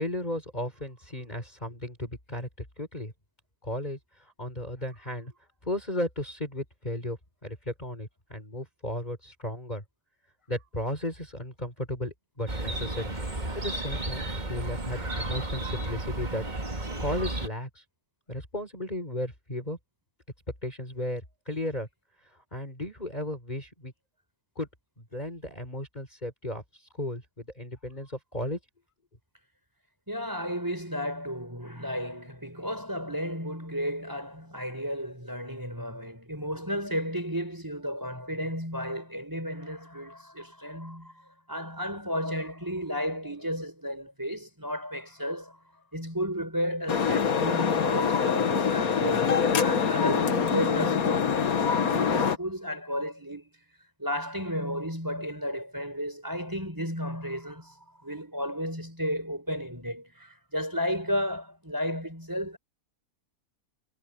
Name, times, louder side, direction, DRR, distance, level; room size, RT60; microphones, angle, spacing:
voice 1, 0.0-3.1 3.6-5.3 5.6-9.8 10.5-16.5 17.0-17.8 18.3-19.8 20.6-21.9 22.5-23.9 24.6-24.7 25.0-28.6, left 1 dB, 25° left, 4.7 m, -35 dB
Chirp tweet, 12.5-17.5, right 2 dB, 30° right, 2.5 m, -33 dB
voice 2, 14.9-15.5 30.1-45.6 45.9-53.5 54.0-62.6, equal, 10° right, 5.4 m, -33 dB
sound 1, 46.9-52.4, left 6 dB, 65° left, 1.9 m, -25 dB
omnidirectional pair, 1.7 m